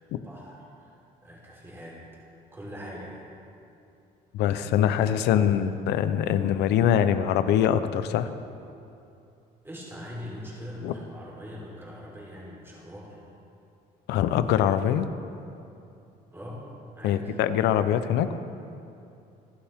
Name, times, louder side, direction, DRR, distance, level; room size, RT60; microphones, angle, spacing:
voice 1, 0.2-2.2 2.5-3.3 5.0-5.6 9.6-13.3 16.3-16.6 16.9-17.3, equal, 15° right, -5 dB, 3.9 m, -42 dB
voice 2, 4.3-8.3 10.8-10.9 14.1-15.1 17.0-18.4, left 10 dB, 85° left, 11 dB, 0.8 m, -23 dB
25.0 x 12.0 x 3.7 m, 2.7 s
cardioid pair, 110°, 17 cm